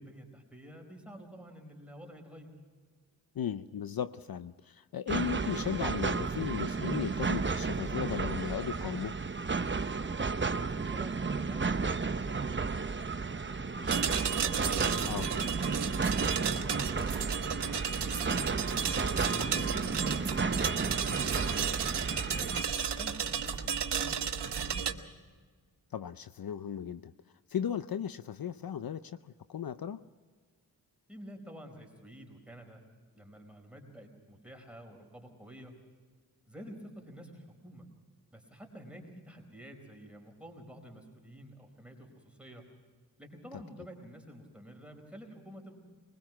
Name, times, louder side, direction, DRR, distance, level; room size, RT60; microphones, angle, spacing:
voice 1, 0.0-2.5 10.0-15.6 23.0-25.0 31.1-32.8 33.1-35.7 36.4-37.9 38.3-42.6 43.2-45.8, equal, 5° right, 3 dB, 4.5 m, -50 dB
voice 2, 3.4-9.1 15.1-15.3 19.4-19.5 25.9-27.1 27.5-30.0, left 8 dB, 60° left, 13 dB, 0.6 m, -36 dB
sound 1, 5.1-22.6, right 4 dB, 30° right, 0.8 m, -33 dB
sound 2, 13.9-24.9, right 7 dB, 80° right, 1.3 m, -33 dB
22.0 x 20.5 x 6.1 m, 1.5 s
cardioid pair, 60°, 40 cm